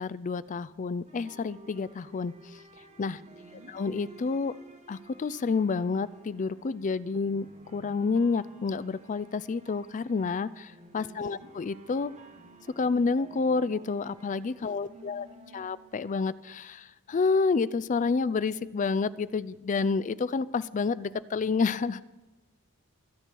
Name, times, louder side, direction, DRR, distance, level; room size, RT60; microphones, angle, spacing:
voice 1, 0.0-2.3 3.0-3.2 3.7-4.6 4.9-7.5 7.7-12.1 12.8-15.3 15.5-22.0, left 4 dB, 35° left, 18 dB, 0.4 m, -29 dB
sound 1, 1.1-16.6, right 1 dB, 30° right, 1.5 m, -54 dB
voice 2, 3.2-3.7 11.1-11.5 14.6-15.7, equal, 80° right, 1 dB, 2.6 m, -53 dB
24.5 x 8.4 x 4.6 m, 1.2 s
head